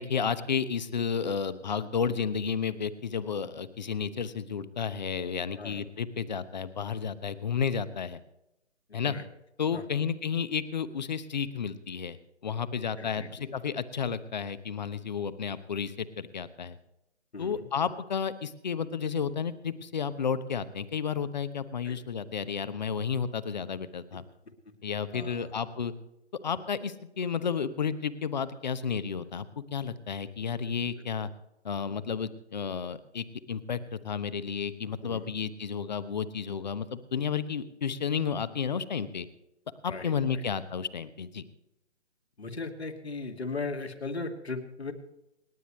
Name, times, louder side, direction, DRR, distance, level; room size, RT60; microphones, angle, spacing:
voice 1, 0.0-8.2 8.9-9.2 9.6-12.2 12.4-16.8 17.4-24.2 24.8-25.9 26.4-31.3 31.6-39.3 39.8-41.4, left 6 dB, 40° left, 14 dB, 1.1 m, -32 dB
voice 2, 8.9-9.2 9.7-9.8 13.0-13.6 17.3-17.7 21.8-22.0 25.1-25.5 35.0-35.3 39.9-40.4 42.4-44.9, left 3 dB, 65° left, 4 dB, 2.6 m, -38 dB
28.5 x 9.8 x 3.1 m, 0.87 s
figure-of-eight pair, 140°, 34 cm